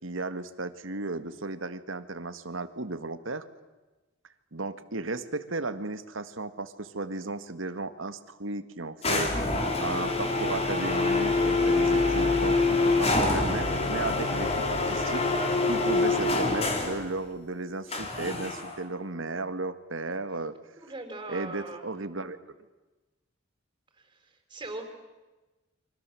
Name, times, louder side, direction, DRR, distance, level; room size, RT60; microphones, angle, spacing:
voice 1, 0.0-3.5 4.5-9.5 9.8-15.3 15.6-20.6 21.3-22.4, right 3 dB, 80° right, 11 dB, 1.8 m, -35 dB
sound 1, 9.0-17.1 17.9-18.8, left 2 dB, 30° left, 3.9 m, -26 dB
voice 2, 20.8-21.9 24.0-24.8, right 2 dB, 20° right, 4 dB, 4.8 m, -40 dB
30.0 x 25.0 x 7.7 m, 1.1 s
head